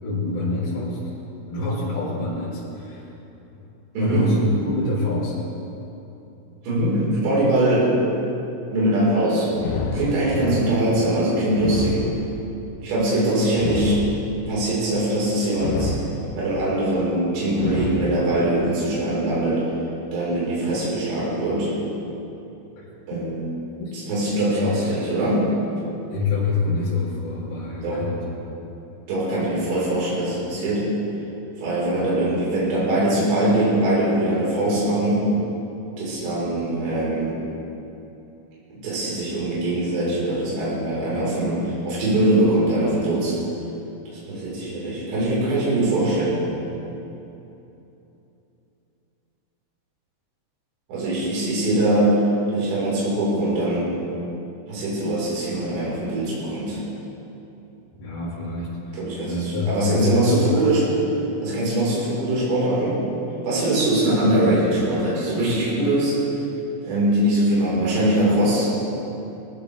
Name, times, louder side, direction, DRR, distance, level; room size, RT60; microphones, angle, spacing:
voice 1, 0.0-1.0 1.5-3.1 4.0-5.4 10.2-10.6 22.8-22.9 23.2-23.3 23.8-23.9 24.6-24.7 26.1-28.2 58.0-59.0 59.2-60.8, left 2 dB, 55° left, -9 dB, 5.7 m, -26 dB
voice 2, 3.9-4.4 6.6-8.0 8.7-9.5 9.9-12.0 12.8-14.0 14.5-15.9 16.3-19.6 20.1-21.7 23.1-23.4 24.1-25.5 27.8-28.0 29.1-30.9 31.6-35.3 36.0-37.4 38.8-43.4 44.3-46.4 50.9-52.2 52.5-53.9 54.7-56.8 59.0-59.3 59.7-60.8 61.4-63.0 63.4-66.2 66.8-68.9, right 1 dB, 65° right, -7 dB, 6.8 m, -22 dB
sound 1, 9.5-10.6 11.5-12.6 13.5-14.6 15.5-16.6 17.5-18.6, left 4 dB, 70° left, 2.3 m, -29 dB
23.5 x 15.5 x 3.5 m, 2.9 s
omnidirectional pair, 5.6 m